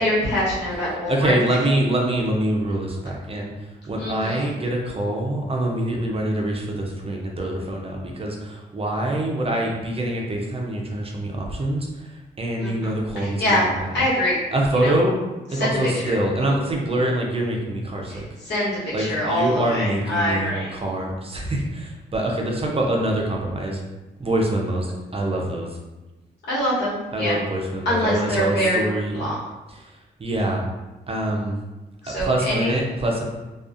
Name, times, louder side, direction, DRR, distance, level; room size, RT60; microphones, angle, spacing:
voice 1, 0.0-1.7 4.0-4.6 12.6-14.4 14.7-14.9 15.5-16.2 18.1-20.7 26.5-27.4 27.8-29.4 32.0-32.7, left 1 dB, 75° left, -7 dB, 1.1 m, -25 dB
voice 2, 1.1-3.5 3.9-11.9 12.4-13.6 14.5-15.1 15.5-18.2 18.9-23.8 24.2-25.7 27.1-29.2 30.2-30.6 31.1-31.5 32.2-33.2, right 1 dB, 30° right, 0 dB, 0.6 m, -24 dB
2.4 x 2.3 x 2.5 m, 1.1 s
cardioid pair, 60°, 18 cm